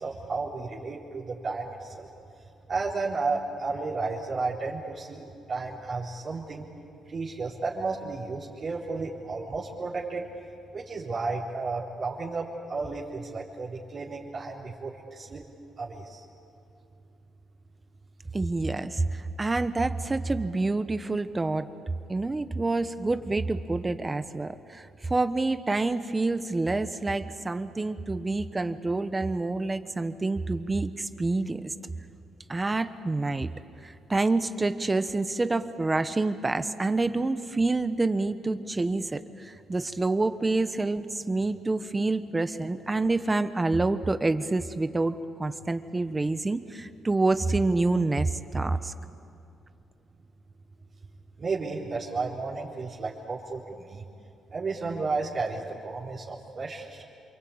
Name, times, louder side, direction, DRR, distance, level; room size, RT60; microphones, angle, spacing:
voice 1, 0.0-2.1 2.7-6.7 7.1-10.3 10.7-15.4 15.8-16.2 51.4-54.0 54.5-57.0, right 3 dB, 45° right, -6 dB, 4.0 m, -33 dB
voice 2, 18.3-21.7 22.1-31.7 32.5-33.5 33.8-48.9, right 2 dB, 20° right, 11 dB, 1.1 m, -27 dB
28.0 x 23.5 x 8.7 m, 2.7 s
cardioid pair, 90°, 0 cm